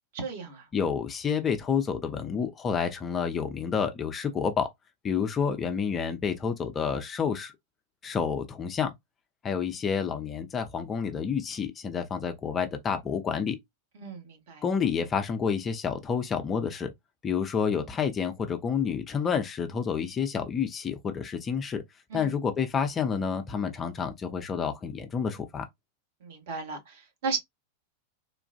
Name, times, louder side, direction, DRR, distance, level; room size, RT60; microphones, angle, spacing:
voice 1, 0.1-0.7 13.9-14.6 22.1-22.3 26.2-27.4, right 5 dB, 55° right, 1.4 m, -35 dB
voice 2, 0.7-4.7 5.0-7.5 8.0-8.9 9.4-13.6 14.6-16.9 17.2-21.8 22.1-25.6, left 6 dB, 25° left, 0.6 m, -29 dB
3.8 x 2.4 x 2.3 m
figure-of-eight pair, 90°, 0 cm